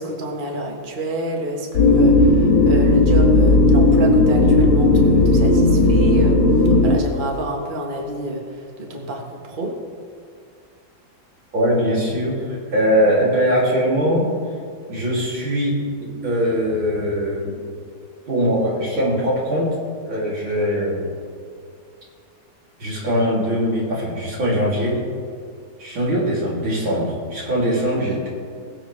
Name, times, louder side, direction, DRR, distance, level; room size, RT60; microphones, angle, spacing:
voice 1, 0.0-6.4 6.8-8.4 8.8-9.7, equal, 25° right, 0 dB, 1.5 m, -28 dB
sound 1, 1.7-7.0, left 2 dB, 80° left, 2.2 m, -14 dB
voice 2, 11.5-14.3 14.9-17.6 18.3-19.7 20.0-21.0 22.8-25.0 25.8-28.3, equal, 80° right, -5 dB, 3.8 m, -21 dB
21.0 x 7.7 x 3.4 m, 2.3 s
omnidirectional pair, 2.1 m